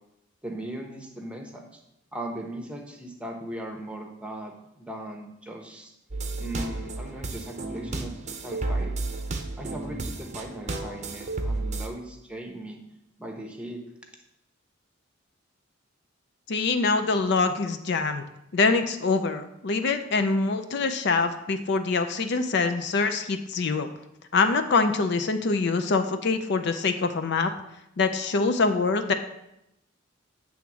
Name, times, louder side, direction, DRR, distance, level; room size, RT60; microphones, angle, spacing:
voice 1, 0.4-1.6 2.1-5.9 6.4-8.1 8.4-9.0 9.6-12.8 13.2-13.8, right 1 dB, 5° right, 2 dB, 0.9 m, -38 dB
sound 1, 6.1-11.9, right 2 dB, 35° right, 0.7 m, -32 dB
voice 2, 16.5-18.2 18.5-23.9 24.3-27.5 28.0-29.1, left 4 dB, 55° left, 8 dB, 0.5 m, -24 dB
8.5 x 3.5 x 6.1 m, 0.85 s
head